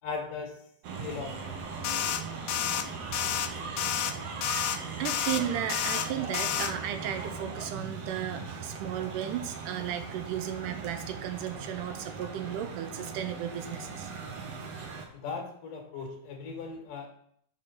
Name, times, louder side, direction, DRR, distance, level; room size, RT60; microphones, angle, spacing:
voice 1, 0.0-0.6 1.0-1.5 15.1-17.1, left 5 dB, 65° left, 1 dB, 3.4 m, -38 dB
sound 1, 0.8-15.1, right 5 dB, 55° right, 1.9 m, -39 dB
sound 2, 1.8-2.2 2.5-2.8 3.1-3.5 3.8-4.1 4.4-4.8 5.1-5.4 5.7-6.1 6.3-6.7, left 11 dB, 85° left, 1.7 m, -30 dB
voice 2, 4.9-14.1, right 10 dB, 75° right, 8 dB, 2.0 m, -35 dB
7.0 x 6.5 x 5.7 m, 0.66 s
omnidirectional pair, 4.2 m